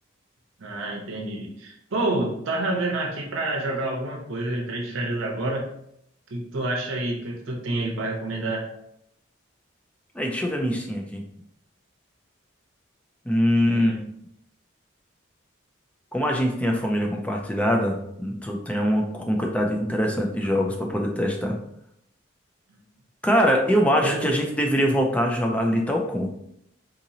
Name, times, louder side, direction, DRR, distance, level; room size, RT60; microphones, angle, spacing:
voice 1, 0.6-5.6 6.3-8.6 13.6-14.0 24.0-24.3, right 2 dB, 75° right, -1 dB, 0.7 m, -28 dB
voice 2, 10.1-11.2 13.3-13.9 16.1-21.6 23.2-26.3, equal, 5° left, 1 dB, 0.4 m, -23 dB
3.8 x 2.9 x 2.7 m, 0.75 s
head